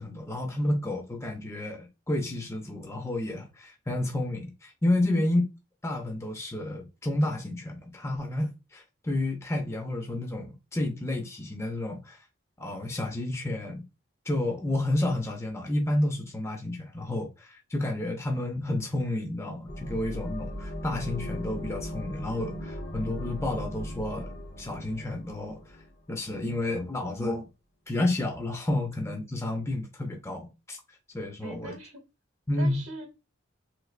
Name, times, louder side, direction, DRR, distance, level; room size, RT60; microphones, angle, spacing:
voice 1, 0.0-5.4 5.8-10.5 10.7-12.2 12.6-13.8 14.3-25.8 26.1-27.4 27.9-30.8 31.1-31.7 32.5-32.8, left 1 dB, 15° left, 0.5 m, -30 dB
voice 2, 5.1-5.4 31.4-32.0 32.6-33.1, right 1 dB, 65° right, 0.8 m, -40 dB
sound 1, 19.7-26.3, equal, 50° left, 0.8 m, -38 dB
3.2 x 3.1 x 2.3 m
head